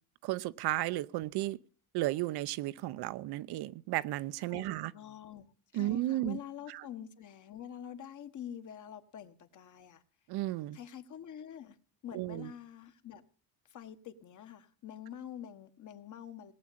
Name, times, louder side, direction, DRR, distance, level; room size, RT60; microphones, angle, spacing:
voice 1, 0.2-1.6 1.9-4.9 5.7-6.4 6.7-6.8 10.3-10.8 12.1-12.5, right 16 dB, 75° right, 0.7 m, -34 dB
voice 2, 4.5-5.4 5.7-10.0 10.7-11.8 12.0-13.2 13.6-16.5, left 9 dB, 50° left, 1.5 m, -46 dB
18.5 x 7.5 x 8.6 m
cardioid pair, 125°, 39 cm